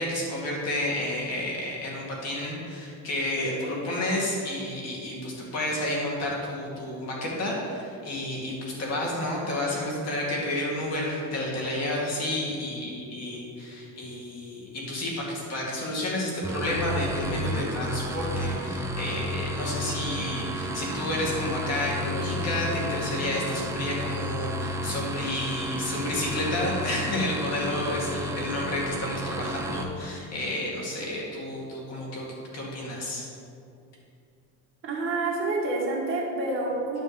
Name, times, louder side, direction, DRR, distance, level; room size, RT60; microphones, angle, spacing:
voice 1, 0.0-32.3 32.5-33.3, left 1 dB, 50° left, -3 dB, 2.1 m, -30 dB
sound 1, 16.4-29.8, equal, 10° right, 0.4 m, -32 dB
voice 2, 34.8-37.0, right 2 dB, 40° right, -3 dB, 1.7 m, -28 dB
9.9 x 3.5 x 6.8 m, 2.5 s
cardioid pair, 160°, 32 cm